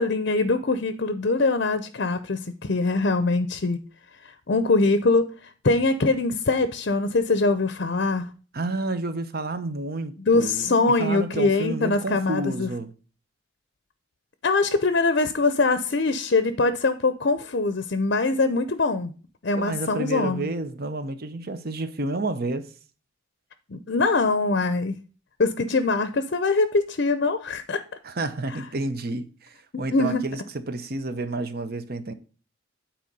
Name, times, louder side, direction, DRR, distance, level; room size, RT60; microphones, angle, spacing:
voice 1, 0.0-3.8 4.5-8.3 10.3-12.7 14.4-19.1 19.4-20.4 23.7-25.0 25.4-27.8 29.9-30.2, left 3 dB, 55° left, 0.6 m, -23 dB
voice 2, 8.5-12.9 19.6-22.7 28.0-32.1, right 2 dB, 45° right, 0.8 m, -30 dB
9.1 x 4.4 x 5.3 m
head